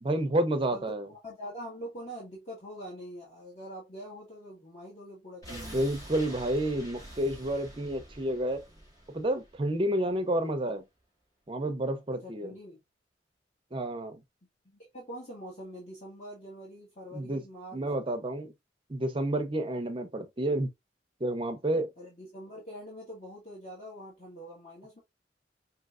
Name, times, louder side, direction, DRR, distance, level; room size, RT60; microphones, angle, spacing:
voice 1, 0.0-1.1 5.5-8.6 9.1-10.8 11.5-12.5 13.7-14.2 17.1-17.4 17.7-18.5 18.9-20.7 21.2-21.9, right 1 dB, 30° right, 0.6 m, -30 dB
voice 2, 0.7-5.9 12.2-12.8 14.6-17.8 22.0-25.0, equal, 40° left, 1.6 m, -44 dB
sound 1, 5.4-10.4 10.7-10.8, equal, 20° left, 1.8 m, -47 dB
5.1 x 2.8 x 2.4 m
head